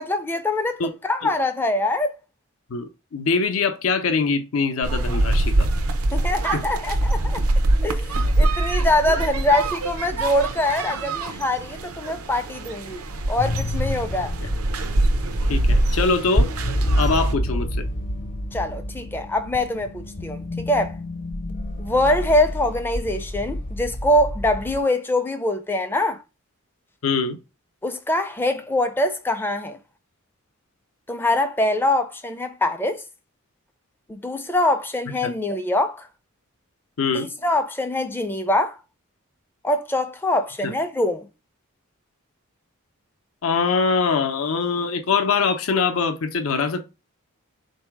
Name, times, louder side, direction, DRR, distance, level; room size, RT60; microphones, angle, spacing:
voice 1, 0.0-2.1 6.1-7.4 7.8-13.0 13.3-14.3 18.5-21.0 21.8-26.2 27.8-29.8 31.1-33.0 34.1-36.1 37.1-38.7 39.6-41.3, left 1 dB, 10° left, 0.4 m, -23 dB
voice 2, 2.7-5.7 6.5-6.6 15.5-16.5 17.0-17.8 27.0-27.4 35.2-35.3 37.0-37.3 40.6-40.7 43.4-46.9, left 4 dB, 75° left, 0.6 m, -23 dB
sound 1, 4.8-17.3, right 2 dB, 90° right, 0.6 m, -24 dB
sound 2, 13.4-24.8, equal, 40° left, 0.7 m, -28 dB
3.8 x 2.7 x 4.6 m
head